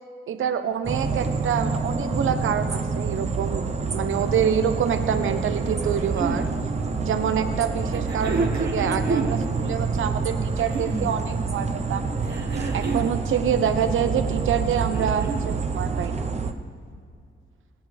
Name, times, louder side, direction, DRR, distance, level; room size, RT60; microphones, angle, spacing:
voice 1, 0.3-3.7 3.9-6.5 7.0-12.1 12.7-16.3, right 8 dB, 75° right, 8 dB, 0.9 m, -26 dB
sound 1, 0.8-16.5, right 4 dB, 35° right, 0.9 m, -27 dB
sound 2, 5.6-6.4 7.9-9.4 10.4-11.2 12.2-13.2 14.6-15.5 16.7-16.8, right 3 dB, 55° right, 2.0 m, -29 dB
17.5 x 10.5 x 3.4 m, 2.2 s
cardioid pair, 75°, 21 cm